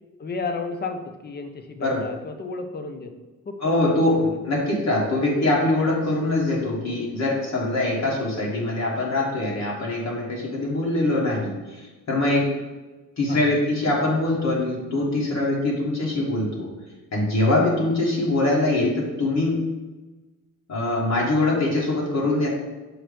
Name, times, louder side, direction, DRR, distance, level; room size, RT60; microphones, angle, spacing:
voice 1, 0.2-3.2 3.5-4.4 4.7-4.8 9.0-9.2 13.3-13.6 18.6-18.8, left 4 dB, 30° left, 7 dB, 0.5 m, -33 dB
voice 2, 3.6-12.5 13.2-16.7 17.1-19.6 20.7-22.5, left 2 dB, 55° left, -3 dB, 1.3 m, -23 dB
6.4 x 3.0 x 5.0 m, 1.2 s
wide cardioid pair, 165°, 33 cm